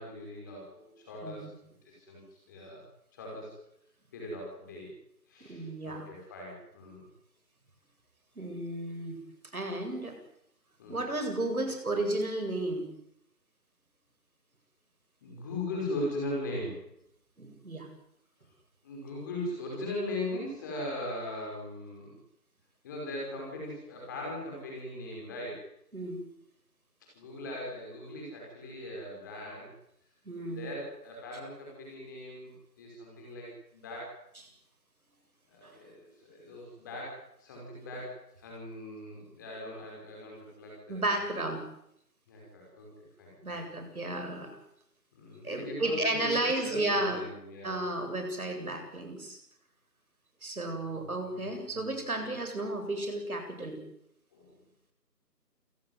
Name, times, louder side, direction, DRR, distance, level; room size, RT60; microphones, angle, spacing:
voice 1, 0.0-1.5 1.8-2.2 2.5-2.8 3.1-3.6 4.1-4.9 5.3-7.0 10.8-11.0 15.2-16.9 18.8-22.1 22.8-25.7 27.1-29.7 30.4-34.2 35.5-41.3 42.3-43.6 45.1-47.9 50.8-51.9 54.3-54.6, left 1 dB, 10° left, -2 dB, 5.5 m, -40 dB
voice 2, 5.4-6.0 8.4-9.2 9.5-10.2 10.9-12.9 17.4-17.9 25.9-26.2 30.3-30.7 40.9-41.6 43.4-44.6 45.4-47.2 47.6-49.4 50.4-53.8, right 2 dB, 60° right, 6 dB, 7.9 m, -33 dB
28.5 x 17.0 x 9.6 m, 0.76 s
figure-of-eight pair, 170°, 49 cm